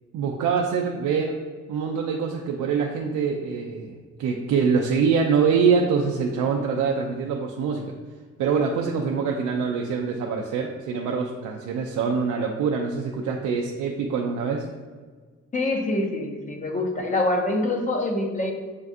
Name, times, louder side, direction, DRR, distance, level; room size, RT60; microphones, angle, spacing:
voice 1, 0.1-1.4 1.7-7.8 8.4-14.7, right 6 dB, 75° right, 1 dB, 0.5 m, -24 dB
voice 2, 15.5-18.5, left 2 dB, 25° left, 2 dB, 0.6 m, -25 dB
6.6 x 2.3 x 2.6 m, 1.5 s
cardioid pair, 90°, 30 cm